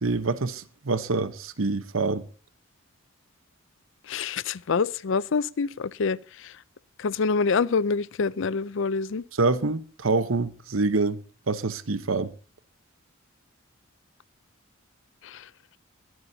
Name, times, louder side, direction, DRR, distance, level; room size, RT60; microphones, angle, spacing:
voice 1, 0.0-2.2 9.3-11.2 11.5-12.3, right 3 dB, 80° right, 1.0 m, -26 dB
voice 2, 4.1-6.2 7.0-9.2 15.2-15.4, left 5 dB, 65° left, 0.5 m, -26 dB
21.5 x 11.0 x 2.8 m
head